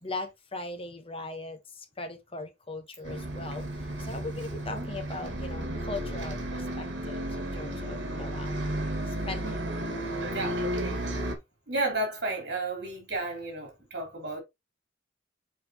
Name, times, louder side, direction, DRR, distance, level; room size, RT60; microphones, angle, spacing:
voice 1, 0.0-8.6 9.0-9.6, left 2 dB, 30° left, 1.4 m, -39 dB
Bus, 3.0-11.3, right 1 dB, 75° right, 2.0 m, -33 dB
voice 2, 9.4-9.8 10.3-10.6 11.7-14.4, right 2 dB, 60° right, 3.8 m, -33 dB
7.2 x 4.7 x 3.1 m
head